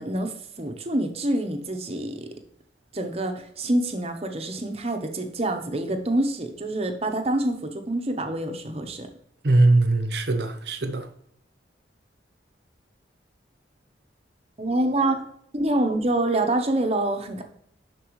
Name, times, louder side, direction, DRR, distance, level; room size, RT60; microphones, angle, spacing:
voice 1, 0.0-2.3 2.9-9.1 14.6-15.2 15.5-17.4, right 1 dB, 30° right, 0.9 m, -26 dB
voice 2, 9.4-11.1, right 2 dB, 60° right, 0.9 m, -21 dB
11.5 x 4.6 x 3.1 m
head